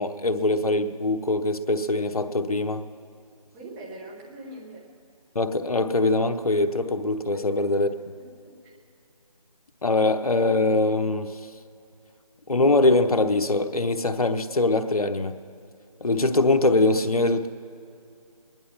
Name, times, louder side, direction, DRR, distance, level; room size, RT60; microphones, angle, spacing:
voice 1, 0.0-2.8 5.3-7.9 9.8-11.4 12.5-15.3 16.0-17.5, left 2 dB, 65° left, 8 dB, 1.0 m, -22 dB
voice 2, 3.5-4.9 7.3-7.4 8.2-8.8, right 1 dB, 10° right, -4 dB, 1.1 m, -42 dB
20.5 x 11.0 x 5.9 m, 2.5 s
figure-of-eight pair, 160°, 20 cm